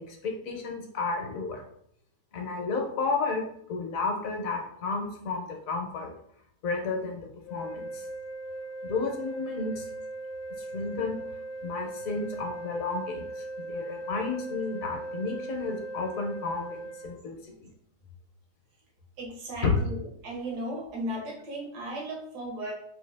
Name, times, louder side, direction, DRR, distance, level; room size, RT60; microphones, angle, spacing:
voice 1, 0.0-1.6 2.3-6.1 6.6-8.1 8.8-9.9 10.6-11.2 11.6-17.4 19.6-19.7 22.6-22.7, left 4 dB, 65° left, 3 dB, 1.1 m, -32 dB
sound 1, 7.4-17.1, right 2 dB, 30° left, 0.5 m, -39 dB
voice 2, 19.2-22.7, right 1 dB, 85° right, -2 dB, 1.7 m, -36 dB
3.9 x 2.7 x 3.3 m, 0.69 s
omnidirectional pair, 1.7 m